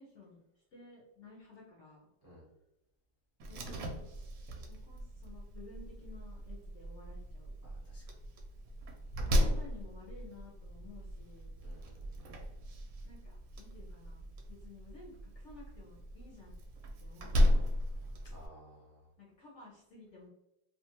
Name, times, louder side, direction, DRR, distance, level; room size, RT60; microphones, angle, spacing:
voice 1, 0.0-2.1 3.5-4.1 4.7-7.6 9.2-11.5 13.0-16.6 17.0-17.7 19.2-20.3, left 3 dB, 65° left, -4 dB, 0.7 m, -55 dB
Slam, 3.4-18.5, equal, 70° right, 0.9 m, -36 dB
voice 2, 7.6-8.1 9.2-9.3 11.6-12.4 18.2-19.1, equal, 30° right, -6 dB, 0.4 m, -57 dB
2.7 x 2.3 x 2.8 m, 0.86 s
omnidirectional pair, 1.8 m